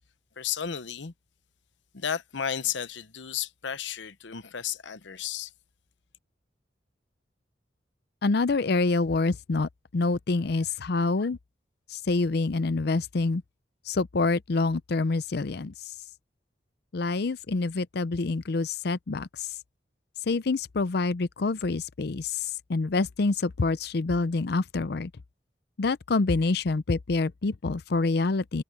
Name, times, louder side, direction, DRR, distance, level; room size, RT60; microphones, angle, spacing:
voice 1, 0.4-1.1 1.9-5.5, left 8 dB, 80° left, 0.9 m, -33 dB
voice 2, 8.2-11.4 11.9-13.4 13.9-15.7 16.9-19.5 20.3-25.1 25.8-28.6, left 3 dB, 60° left, 0.6 m, -26 dB
head